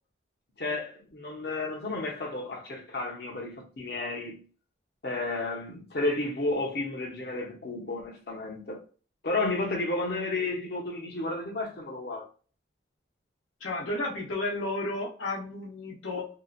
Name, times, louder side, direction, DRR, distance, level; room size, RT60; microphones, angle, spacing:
voice 1, 0.6-4.4 5.0-8.8 9.2-12.3, left 2 dB, 55° left, 0.9 m, -32 dB
voice 2, 13.6-16.3, left 2 dB, 85° left, 1.1 m, -32 dB
2.8 x 2.3 x 2.4 m
head